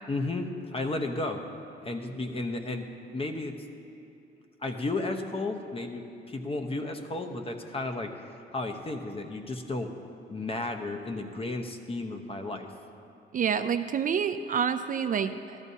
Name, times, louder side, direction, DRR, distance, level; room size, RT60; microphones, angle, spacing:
voice 1, 0.1-1.4 1.8-2.9 3.1-3.5 4.6-8.1 8.5-9.9 10.3-12.7, left 2 dB, 30° left, 5 dB, 0.9 m, -33 dB
voice 2, 13.3-15.6, right 7 dB, 45° right, 9 dB, 0.4 m, -28 dB
14.0 x 12.5 x 2.8 m, 2.9 s
cardioid pair, 90°, 20 cm